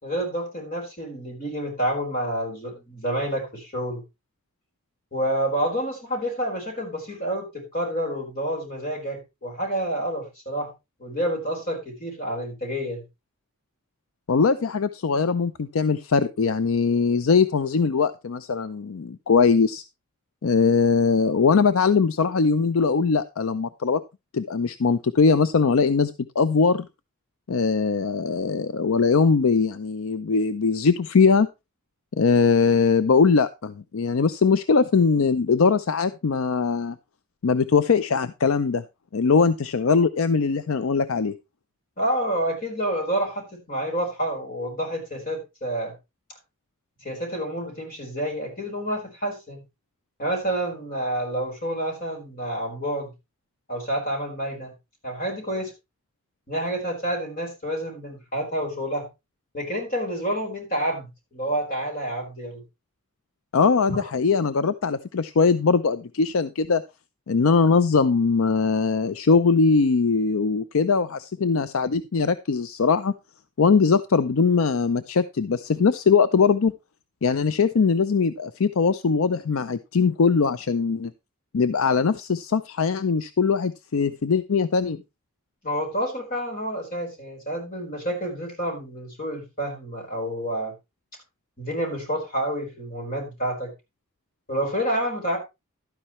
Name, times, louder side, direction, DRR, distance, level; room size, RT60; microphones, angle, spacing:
voice 1, 0.0-4.0 5.1-10.7 11.0-13.0 15.1-15.2 42.0-45.9 47.0-49.6 50.2-53.1 53.7-54.7 55.0-55.7 56.5-59.1 59.5-62.6 63.9-64.0 85.6-90.7 91.6-93.7 94.5-95.4, right 1 dB, 40° left, 2 dB, 4.4 m, -28 dB
voice 2, 14.3-19.8 20.4-24.0 24.3-26.1 26.4-26.9 27.5-31.5 32.2-37.0 37.4-38.8 39.1-41.3 63.5-66.8 67.3-73.1 73.6-76.7 77.2-81.1 81.5-85.0, left 5 dB, 70° left, 14 dB, 0.5 m, -21 dB
12.0 x 9.9 x 3.1 m, 0.25 s
head